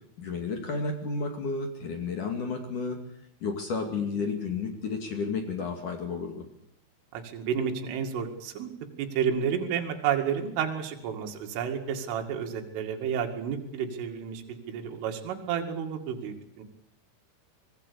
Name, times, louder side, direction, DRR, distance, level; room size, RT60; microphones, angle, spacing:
voice 1, 0.2-3.0 3.4-6.4, left 4 dB, 45° left, 4 dB, 3.2 m, -32 dB
voice 2, 7.1-8.7 9.0-16.6, right 7 dB, 75° right, 3 dB, 4.7 m, -31 dB
25.0 x 21.0 x 7.0 m, 0.74 s
omnidirectional pair, 5.8 m